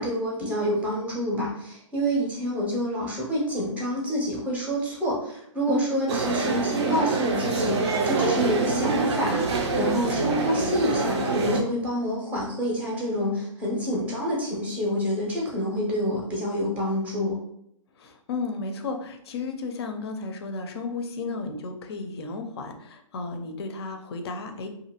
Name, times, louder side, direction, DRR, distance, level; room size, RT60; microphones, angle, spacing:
voice 1, 0.0-9.5 9.8-17.4, equal, 10° right, -3 dB, 0.6 m, -27 dB
sound 1, 6.1-11.6, right 3 dB, 50° right, 0.5 m, -25 dB
voice 2, 18.0-24.7, left 4 dB, 50° left, 5 dB, 0.5 m, -33 dB
2.5 x 2.4 x 2.8 m, 0.74 s
hypercardioid pair, 140°, 17 cm